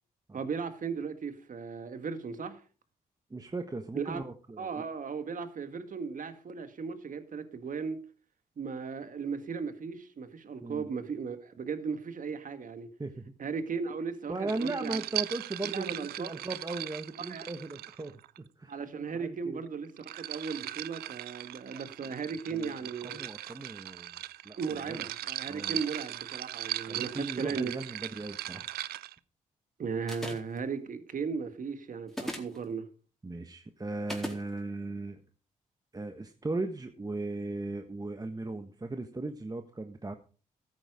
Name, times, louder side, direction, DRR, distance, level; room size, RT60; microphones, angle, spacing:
voice 1, 0.3-2.6 3.9-4.2 4.6-8.0 8.6-12.9 13.4-15.0 15.6-16.4 17.2-17.5 18.7-23.2 24.6-27.7 29.8-32.9, right 5 dB, 60° right, 1.9 m, -36 dB
voice 2, 3.3-4.8 10.6-10.9 13.0-13.3 14.3-18.7 19.1-19.6 21.7-22.1 22.5-22.7 23.0-24.1 24.4-25.0 25.5-25.8 26.9-28.7 33.2-35.2 35.9-40.1, right 2 dB, 25° right, 1.4 m, -37 dB
sound 1, 14.5-18.4 19.7-29.2, right 14 dB, 85° right, 0.5 m, -39 dB
sound 2, 30.1-30.6 32.1-32.6 34.1-34.4, equal, ahead, 4.1 m, -37 dB
14.0 x 9.2 x 4.9 m
supercardioid pair, 50°, 16 cm